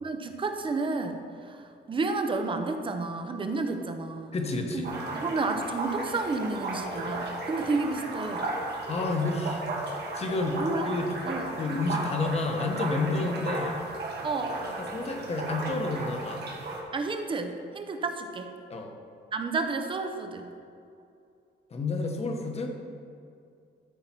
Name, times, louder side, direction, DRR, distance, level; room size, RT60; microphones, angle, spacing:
voice 1, 0.0-4.4 4.7-4.8 5.1-8.5 10.6-10.9 11.2-11.5 14.2-14.6 16.9-18.5 19.3-20.5, right 3 dB, 30° right, 6 dB, 0.7 m, -31 dB
voice 2, 4.3-4.9 8.9-9.6 10.1-11.1 11.6-13.8 14.6-16.5 18.7-18.9 21.7-22.7, left 3 dB, 35° left, 3 dB, 1.1 m, -30 dB
sound 1, 4.8-16.8, right 2 dB, 70° right, 1.5 m, -35 dB
12.5 x 4.7 x 6.0 m, 2.4 s
wide cardioid pair, 180°, 18 cm